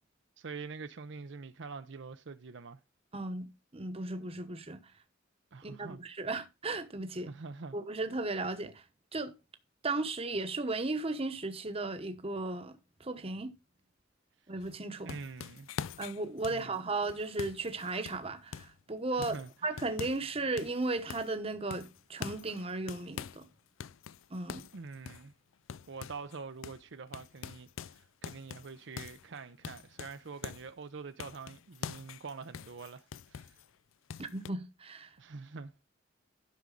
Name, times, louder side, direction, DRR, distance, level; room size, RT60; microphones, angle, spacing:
voice 1, 0.4-2.8 5.5-6.0 7.3-7.8 15.0-15.8 16.5-16.8 19.2-19.7 24.7-25.3 25.9-33.6 35.2-35.7, right 4 dB, 60° right, 0.6 m, -45 dB
voice 2, 3.1-3.5 3.7-4.8 5.6-7.3 7.7-8.8 9.1-9.3 9.8-13.5 14.5-15.2 16.0-19.4 19.6-23.5 24.3-24.7 34.2-35.1, right 2 dB, 30° right, 1.0 m, -35 dB
sound 1, 14.6-18.8 19.2-20.3 20.6-21.4 21.7-23.5 23.8-26.4 26.6-26.8 27.1-30.7 31.2-33.7 34.1-34.5, left 7 dB, 75° left, 0.4 m, -45 dB
11.5 x 6.2 x 3.9 m
head